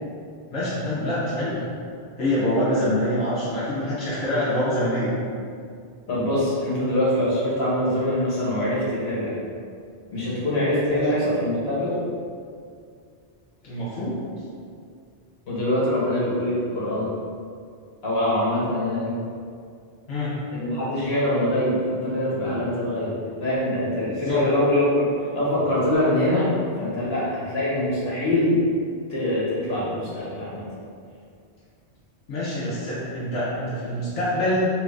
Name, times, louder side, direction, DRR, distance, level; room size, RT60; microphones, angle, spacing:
voice 1, 0.5-1.6 2.2-5.1 10.9-11.0 13.6-14.2 20.1-20.4 24.3-24.4 32.3-34.7, left 1 dB, 85° left, -9 dB, 1.0 m, -25 dB
voice 2, 6.1-9.4 10.1-12.0 15.5-17.1 18.0-19.1 20.5-28.6 29.1-30.6, left 1 dB, 65° left, -8 dB, 1.2 m, -24 dB
3.0 x 2.4 x 3.2 m, 2.3 s
omnidirectional pair, 1.1 m